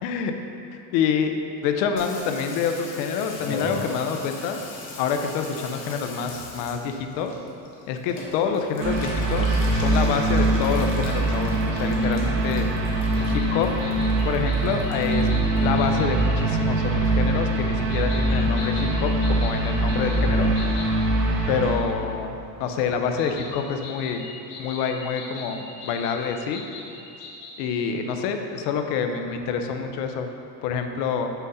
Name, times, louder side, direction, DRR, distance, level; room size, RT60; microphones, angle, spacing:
voice 1, 0.0-0.3 0.7-1.4 1.6-4.6 5.0-7.3 7.9-12.7 13.2-13.7 14.2-20.5 21.5-22.3 22.6-24.3 24.6-26.6 27.6-30.3 30.6-31.3, left 6 dB, 85° left, 5 dB, 0.7 m, -27 dB
Water tap faucet / Bathtub (filling or washing), 2.0-16.5 16.8-17.5 17.8-17.9 18.1-18.2 18.4-18.8 19.1-19.2 19.4-19.5 19.8-19.9 20.1-20.2 20.5-20.6 20.9-21.0 21.2-21.3 21.6-21.7, left 3 dB, 25° left, 0.6 m, -40 dB
sound 1, 8.8-21.8, right 2 dB, 30° right, 0.5 m, -23 dB
sound 2, 13.1-16.4 17.9-21.0 23.2-27.8, left 3 dB, 65° left, 1.3 m, -41 dB
6.1 x 5.5 x 4.0 m, 2.8 s
cardioid pair, 175°, 47 cm